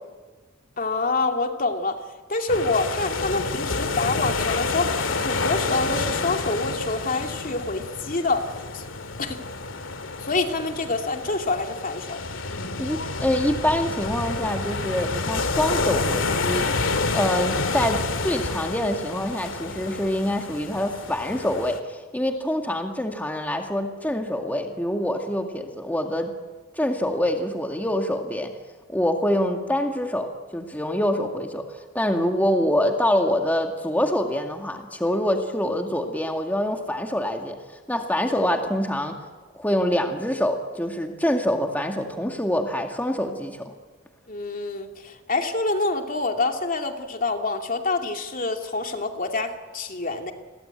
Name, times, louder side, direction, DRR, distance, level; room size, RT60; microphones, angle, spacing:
voice 1, 0.8-2.0 2.3-4.9 5.2-8.4 8.7-8.9 9.2-9.4 10.2-12.2 44.3-50.3, left 3 dB, 45° left, 4 dB, 2.6 m, -26 dB
sound 1, 2.5-21.8, left 3 dB, 90° left, 2.1 m, -29 dB
voice 2, 12.8-16.7 17.1-26.3 26.8-28.5 28.9-30.3 30.5-37.6 37.9-39.2 39.5-43.7, left 1 dB, 10° left, 3 dB, 2.0 m, -25 dB
29.5 x 22.0 x 9.1 m, 1.3 s
head